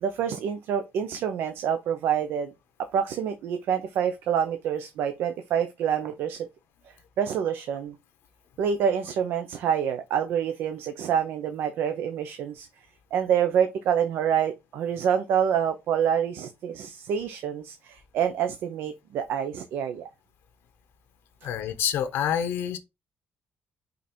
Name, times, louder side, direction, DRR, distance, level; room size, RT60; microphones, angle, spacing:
voice 1, 0.0-2.5 2.9-6.5 7.2-7.9 8.6-12.7 13.1-20.1, right 8 dB, 75° right, 0.8 m, -27 dB
voice 2, 21.4-22.8, left 9 dB, 80° left, 1.0 m, -27 dB
5.4 x 4.0 x 4.4 m
cardioid pair, 170°, 4 cm